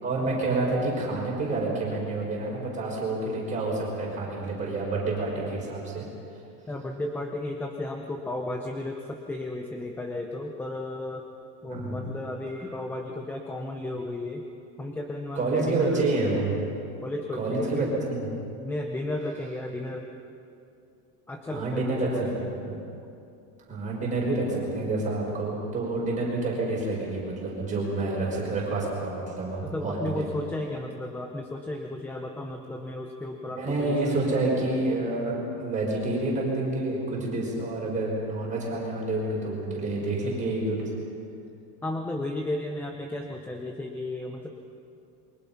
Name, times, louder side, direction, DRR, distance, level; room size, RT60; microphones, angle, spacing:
voice 1, 0.0-6.0 11.7-12.1 15.3-16.6 17.4-18.3 21.5-22.7 23.7-30.2 33.5-40.9, right 2 dB, 15° right, -3 dB, 5.8 m, -28 dB
voice 2, 6.7-11.3 11.6-14.4 14.8-16.0 17.0-17.9 18.6-20.1 21.3-22.3 29.6-34.4 41.8-44.5, left 1 dB, 5° left, 3 dB, 0.6 m, -34 dB
27.5 x 23.5 x 5.7 m, 2.6 s
supercardioid pair, 175°, 44 cm